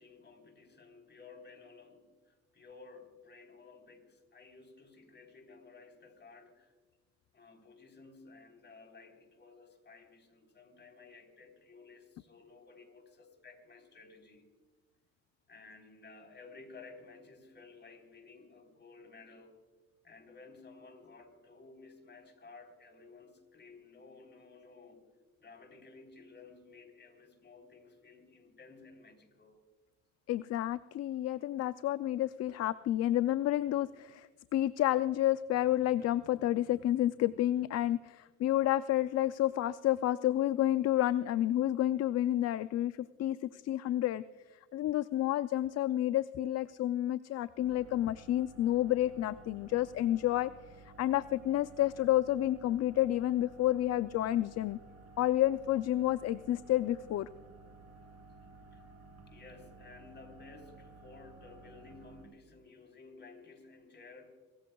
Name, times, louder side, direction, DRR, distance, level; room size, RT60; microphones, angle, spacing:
voice 1, 0.0-6.7 7.3-14.5 15.5-19.6 20.0-25.1 25.4-29.6 58.7-64.3, left 4 dB, 35° left, 4 dB, 3.9 m, -55 dB
voice 2, 30.3-42.9 43.2-44.2 44.7-50.5 51.0-54.8 55.2-57.3, left 13 dB, 60° left, 14 dB, 0.5 m, -30 dB
sound 1, 47.6-62.2, right 3 dB, 55° right, 3.0 m, -55 dB
27.5 x 14.5 x 2.3 m, 1.4 s
cardioid pair, 90°, 30 cm